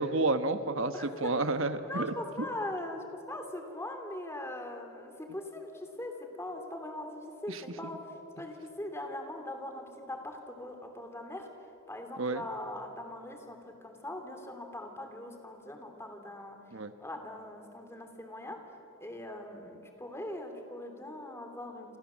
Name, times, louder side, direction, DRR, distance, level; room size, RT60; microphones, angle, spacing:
voice 1, 0.0-2.1 7.5-7.6 12.2-12.4 16.7-16.9, right 2 dB, 65° right, 10 dB, 1.2 m, -30 dB
voice 2, 0.9-1.3 1.8-11.5 11.9-16.6 17.0-18.6 19.0-22.0, left 1 dB, 10° left, 4 dB, 2.8 m, -41 dB
28.0 x 28.0 x 7.5 m, 3.0 s
head